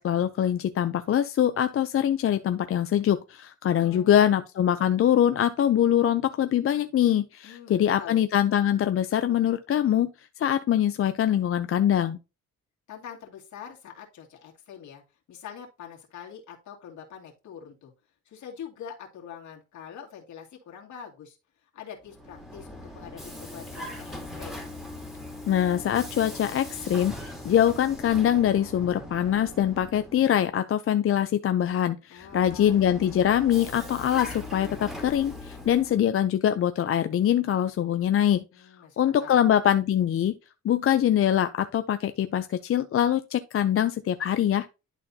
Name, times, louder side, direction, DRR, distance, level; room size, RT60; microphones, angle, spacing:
voice 1, 0.0-10.1 10.4-12.2 25.5-38.4 39.0-40.3 40.6-44.7, left 10 dB, 45° left, 0.5 m, -23 dB
voice 2, 3.7-4.4 7.4-8.2 12.9-15.0 15.3-17.9 18.2-24.6 32.1-32.8 38.5-39.4, left 8 dB, 70° left, 2.5 m, -44 dB
Vehicle, 22.0-30.5 32.2-36.1, left 2 dB, ahead, 2.6 m, -40 dB
11.0 x 4.1 x 2.8 m
cardioid pair, 90°, 30 cm